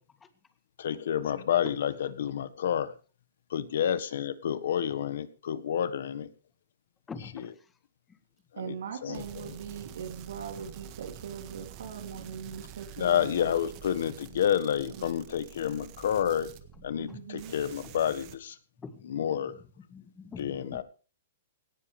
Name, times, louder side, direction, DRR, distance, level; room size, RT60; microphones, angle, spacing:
voice 1, 0.8-1.9 2.2-2.9 3.5-6.3 8.7-8.8 9.0-9.5 13.0-16.5 16.8-18.5 19.1-19.5 20.4-20.8, left 9 dB, 70° left, 14 dB, 1.5 m, -29 dB
voice 2, 7.1-7.7 8.1-8.2 16.7-17.3 18.8-20.8, left 5 dB, 10° left, 9 dB, 1.7 m, -46 dB
voice 3, 8.5-13.6 14.9-15.1 17.0-17.5, right 7 dB, 80° right, 4 dB, 3.0 m, -41 dB
sound 1, 9.1-17.1 17.4-18.3, right 11 dB, 35° right, 1.5 m, -47 dB
18.0 x 17.0 x 3.4 m, 0.36 s
hypercardioid pair, 155°, 0 cm